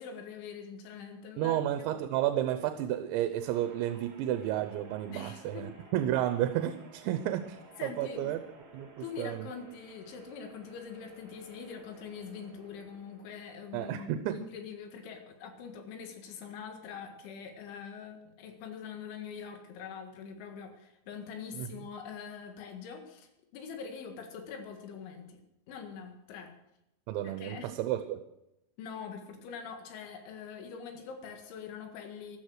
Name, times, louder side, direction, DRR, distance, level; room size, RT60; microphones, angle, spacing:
voice 1, 0.0-2.0 5.1-5.7 7.8-8.3 9.0-25.4 25.7-26.5 27.2-27.8 28.8-32.4, left 6 dB, 85° left, 5 dB, 4.2 m, -44 dB
voice 2, 1.4-8.4 8.7-9.5 13.7-14.4 21.5-21.7 27.1-28.2, right 12 dB, 85° right, 9 dB, 3.1 m, -32 dB
sound 1, 3.4-13.8, right 4 dB, 40° right, 3.3 m, -55 dB
14.0 x 12.5 x 6.5 m, 0.86 s
omnidirectional pair, 5.2 m